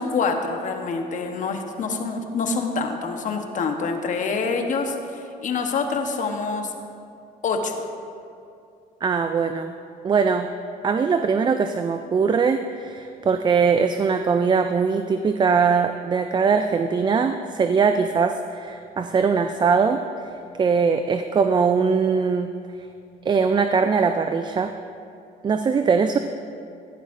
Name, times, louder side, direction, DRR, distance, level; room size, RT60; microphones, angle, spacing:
voice 1, 0.0-6.7 7.4-7.8, left 4 dB, 50° left, 4 dB, 1.1 m, -26 dB
voice 2, 9.0-9.7 10.0-10.5 10.8-20.0 20.6-22.5 23.3-24.7 25.4-26.2, right 5 dB, 25° right, 8 dB, 0.4 m, -21 dB
15.5 x 11.0 x 2.6 m, 2.5 s
cardioid pair, 110°, 17 cm